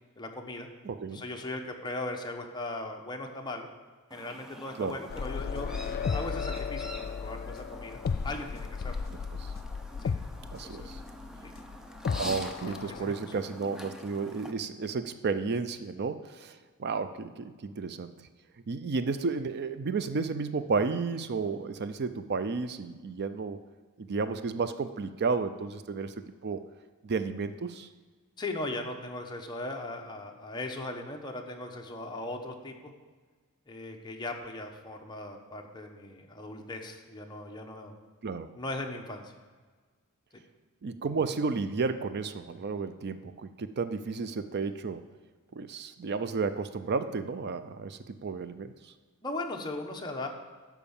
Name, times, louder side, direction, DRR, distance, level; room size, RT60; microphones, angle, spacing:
voice 1, 0.2-0.7 1.1-3.7 4.1-8.9 10.0-10.1 10.6-10.9 11.4-11.5 12.8-13.4 28.4-32.9 33.7-37.9 38.5-39.3 40.3-40.4 49.2-50.3, left 2 dB, 20° left, 2 dB, 1.0 m, -38 dB
voice 2, 0.8-1.2 4.8-5.0 9.4-9.5 10.5-11.0 12.2-18.1 18.7-23.6 24.0-26.1 26.4-26.6 27.0-27.9 38.2-38.5 40.8-45.0 45.5-48.7, right 4 dB, 50° right, 11 dB, 0.5 m, -32 dB
Chirp tweet, 4.1-14.5, equal, 5° right, 0.7 m, -46 dB
sound 1, 5.1-13.2, left 5 dB, 45° left, 0.3 m, -35 dB
12.0 x 4.7 x 7.1 m, 1.4 s
head